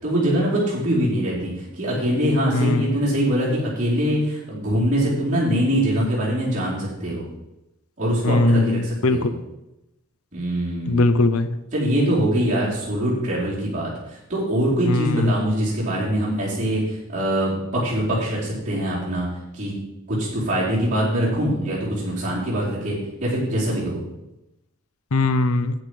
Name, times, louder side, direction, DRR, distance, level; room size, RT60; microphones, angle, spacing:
voice 1, 0.0-7.2 8.0-9.3 10.3-11.0 11.7-19.3 19.5-19.7 20.1-24.0, equal, 35° right, -9 dB, 4.7 m, -23 dB
voice 2, 2.5-2.9 8.2-9.3 10.9-11.5 14.8-15.3 25.1-25.7, left 2 dB, 80° left, 11 dB, 0.7 m, -20 dB
11.0 x 8.9 x 5.0 m, 0.91 s
head